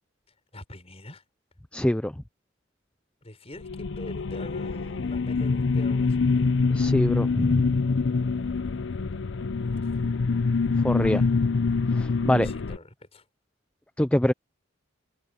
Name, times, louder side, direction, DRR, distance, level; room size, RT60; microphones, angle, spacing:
voice 1, 0.3-1.2 3.2-6.5 9.8-10.0 10.9-11.3 12.3-13.3, left 1 dB, 30° left, 6.3 m, -45 dB
voice 2, 1.7-2.1 6.7-7.8 10.8-11.2 11.9-12.5 14.0-14.3, left 1 dB, 5° left, 0.4 m, -24 dB
sound 1, 3.6-12.8, left 4 dB, 65° left, 0.6 m, -25 dB
head